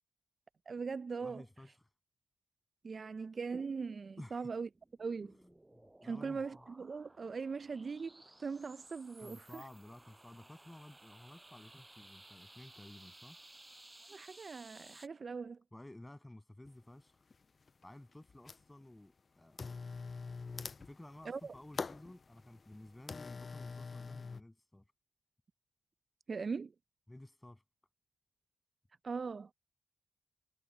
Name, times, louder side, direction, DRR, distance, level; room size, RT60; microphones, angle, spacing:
voice 1, 0.7-1.4 2.8-4.7 5.0-5.3 6.0-9.6 14.1-15.6 21.3-21.5 26.3-26.7 29.0-29.5, right 5 dB, 50° right, 0.4 m, -40 dB
voice 2, 1.2-1.7 4.2-4.5 5.2-6.6 9.2-13.4 15.7-17.2 17.8-19.8 20.8-24.8 27.1-27.6, left 1 dB, 15° left, 7.8 m, -54 dB
sound 1, 4.5-15.1, right 2 dB, 20° right, 7.3 m, -58 dB
sound 2, 16.6-16.7 17.3-17.8 18.1-18.8 19.5-24.4, left 4 dB, 50° left, 0.3 m, -44 dB
supercardioid pair, 45°, 0 cm